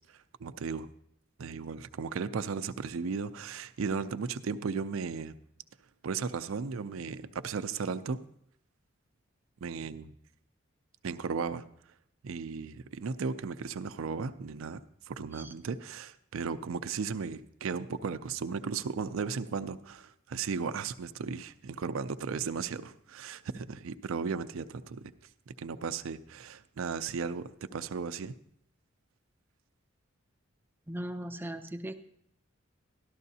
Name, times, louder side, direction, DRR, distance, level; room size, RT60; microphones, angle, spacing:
voice 1, 0.4-0.9 1.4-5.3 6.0-8.2 9.6-10.1 11.0-11.6 12.2-25.1 25.5-28.4, right 5 dB, 85° right, 12 dB, 0.5 m, -35 dB
voice 2, 30.9-31.9, right 1 dB, 10° right, 8 dB, 0.4 m, -38 dB
13.0 x 12.0 x 2.7 m, 0.72 s
head